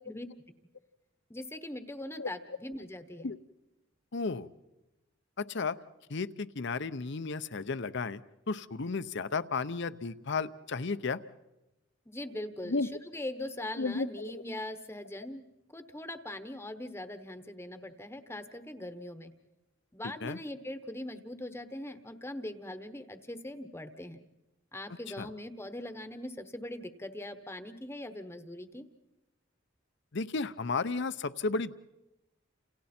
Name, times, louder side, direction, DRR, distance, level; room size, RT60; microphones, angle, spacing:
voice 1, 1.3-3.3 12.1-15.4 15.7-19.3 19.9-24.2 24.7-28.8, left 1 dB, 15° left, 9 dB, 1.0 m, -41 dB
voice 2, 4.1-4.5 5.5-5.8 6.1-8.2 8.5-11.2 12.6-12.9 13.8-14.4 20.2-20.4 25.2-25.3 30.1-31.8, left 4 dB, 65° left, 13 dB, 0.7 m, -33 dB
30.0 x 28.0 x 4.4 m, 0.97 s
head